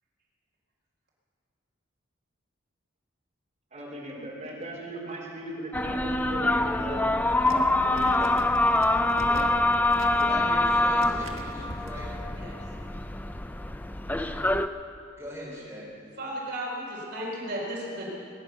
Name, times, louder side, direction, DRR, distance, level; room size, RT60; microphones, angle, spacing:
voice 1, 3.7-7.0 7.5-8.3, right 1 dB, 35° right, -4 dB, 4.0 m, -38 dB
sound 1, 5.7-14.7, left 2 dB, 10° left, 0.3 m, -25 dB
sound 2, 7.3-11.9, right 1 dB, 70° right, 1.5 m, -43 dB
voice 2, 10.1-12.1 15.2-15.9, right 1 dB, 10° right, -6 dB, 3.6 m, -39 dB
voice 3, 16.2-18.1, right 1 dB, 50° right, -5 dB, 4.0 m, -34 dB
20.5 x 10.5 x 6.7 m, 2.5 s
head